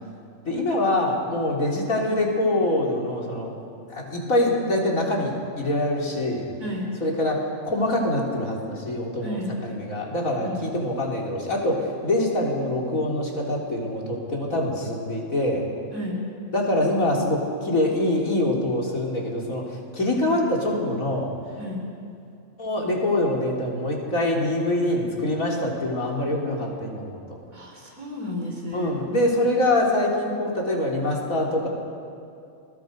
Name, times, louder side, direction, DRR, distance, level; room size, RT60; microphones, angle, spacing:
voice 1, 0.5-3.5 3.9-6.5 7.0-15.6 16.5-21.3 22.6-27.4 28.7-31.7, left 1 dB, 85° left, -2 dB, 4.1 m, -24 dB
voice 2, 9.2-9.5 10.4-10.6 15.9-16.2 21.6-21.8 27.5-28.9, left 1 dB, 90° right, 0 dB, 5.0 m, -32 dB
29.5 x 21.5 x 5.3 m, 2.5 s
omnidirectional pair, 1.4 m